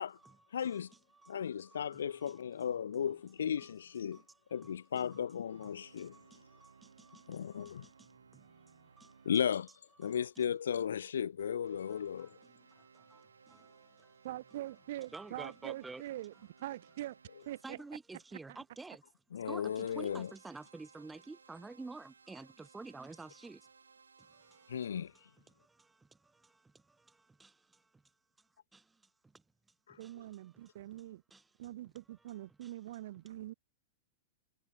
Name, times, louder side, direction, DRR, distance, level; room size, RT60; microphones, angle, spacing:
voice 1, 0.0-2.7 2.9-3.1 3.6-3.7 4.1-4.8 5.0-9.6 10.0-10.4 11.4-16.1 16.3-16.7 17.6-23.7 24.2-29.4 29.9-33.2, right 3 dB, 10° right, 1.6 m, -53 dB
voice 2, 0.5-0.9 1.3-4.2 4.5-6.2 7.3-7.9 9.3-9.7 10.0-12.3 19.3-20.3 24.7-25.1 29.9-30.0, left 8 dB, 65° left, 0.3 m, -35 dB
sound 1, 5.4-9.7 11.6-17.7 19.6-24.9, right 5 dB, 75° right, 1.5 m, -62 dB
voice 3, 14.2-16.3 16.6-17.1 17.5-17.8 30.0-31.2 31.6-33.5, right 14 dB, 55° right, 0.6 m, -43 dB
figure-of-eight pair, 100°, 0 cm